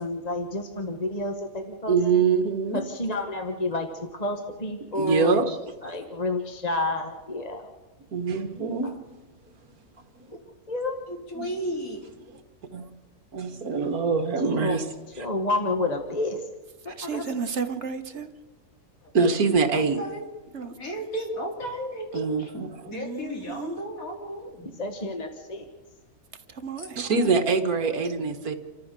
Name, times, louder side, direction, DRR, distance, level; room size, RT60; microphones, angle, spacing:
voice 1, 0.0-2.2 2.7-3.9 4.2-5.4 5.8-7.7 10.3-10.4 10.7-11.0 14.4-14.8 15.2-16.4 16.8-17.2 24.8-25.6, left 2 dB, 25° left, 1.3 m, -29 dB
voice 2, 1.9-2.8 5.0-5.6 5.8-6.0 8.1-9.2 11.4-11.5 12.7-12.9 13.3-14.9 16.9-17.0 19.1-20.0 22.1-22.9 27.0-28.5, right 4 dB, 65° right, 2.0 m, -24 dB
voice 3, 11.1-12.0 19.0-19.1 19.7-20.2 20.7-24.6 26.8-26.9, equal, 60° left, 3.9 m, -34 dB
voice 4, 17.0-18.3 20.5-20.7 22.9-23.7 26.5-27.1, right 6 dB, 50° right, 1.3 m, -33 dB
28.0 x 14.0 x 6.7 m
omnidirectional pair, 1.7 m